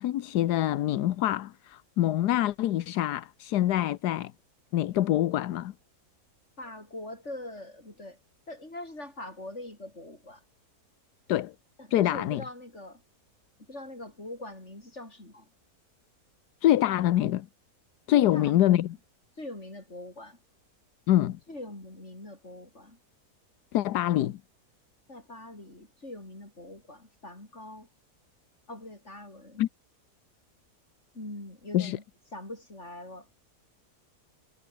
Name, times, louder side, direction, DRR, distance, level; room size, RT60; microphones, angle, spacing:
voice 1, 0.0-4.3 4.7-5.7 11.3-11.5 11.9-12.4 16.6-17.5 18.1-18.9 21.1-21.4 23.7-24.4 29.6-29.7 31.7-32.0, left 13 dB, 85° left, 1.3 m, -25 dB
voice 2, 6.6-8.2 8.5-10.4 11.8-13.0 13.7-15.5 18.1-18.8 19.4-20.4 21.5-23.0 25.1-27.9 28.7-29.6 31.1-32.0 32.3-33.3, left 1 dB, 45° left, 7.8 m, -43 dB
omnidirectional pair, 1.7 m